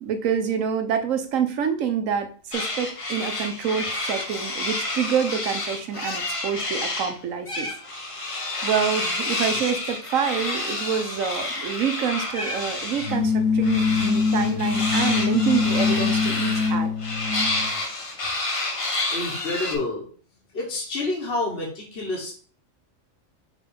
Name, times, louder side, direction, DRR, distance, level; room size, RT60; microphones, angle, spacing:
voice 1, 0.0-7.7 8.6-16.9, right 7 dB, 75° right, 8 dB, 1.1 m, -27 dB
sound 1, 2.5-7.1 7.5-13.2 13.6-19.8, left 2 dB, 25° left, 0.9 m, -29 dB
sound 2, 13.0-17.7, left 5 dB, 80° left, 1.2 m, -23 dB
voice 2, 19.1-20.0 20.5-22.3, left 2 dB, 50° left, -3 dB, 1.5 m, -28 dB
5.3 x 3.8 x 5.1 m, 0.43 s
omnidirectional pair, 1.4 m